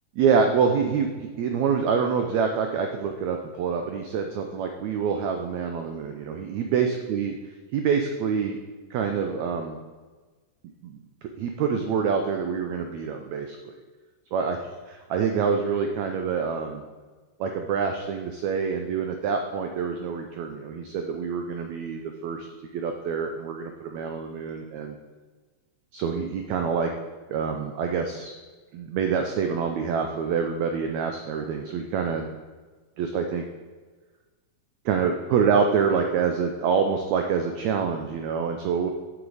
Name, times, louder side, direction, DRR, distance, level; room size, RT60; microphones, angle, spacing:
voice 1, 0.2-7.3 7.7-8.6 8.9-9.8 10.8-11.0 11.4-13.8 14.3-14.6 15.1-16.8 17.4-22.5 22.7-25.0 25.9-26.9 27.3-28.4 28.7-32.3 33.0-33.5 34.9-38.9, right 6 dB, 75° right, 4 dB, 1.7 m, -26 dB
8.2 x 7.7 x 4.1 m, 1.4 s
omnidirectional pair, 3.8 m